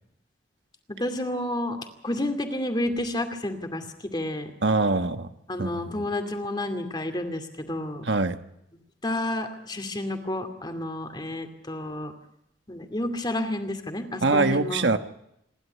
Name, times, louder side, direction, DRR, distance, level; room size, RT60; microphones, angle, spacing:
voice 1, 0.9-1.8 2.0-4.5 5.5-8.0 9.0-12.1 12.7-14.9, left 1 dB, 25° left, 7 dB, 2.4 m, -30 dB
voice 2, 4.6-5.3 5.6-6.0 8.0-8.4 14.2-15.0, right 3 dB, 70° right, 9 dB, 1.2 m, -23 dB
27.0 x 11.5 x 9.5 m, 0.80 s
head